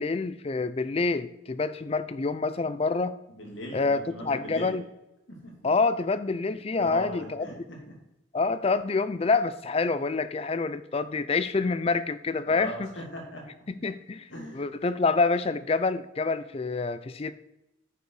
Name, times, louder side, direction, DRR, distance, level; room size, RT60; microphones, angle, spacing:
voice 1, 0.0-3.1 3.7-4.8 5.6-7.5 8.3-12.9 13.8-17.3, left 4 dB, 30° left, 14 dB, 0.4 m, -27 dB
voice 2, 3.3-4.8 5.3-5.5 6.8-7.9 12.4-13.4 14.3-14.7, equal, 75° left, 0 dB, 2.7 m, -39 dB
9.8 x 6.7 x 4.8 m, 0.91 s
head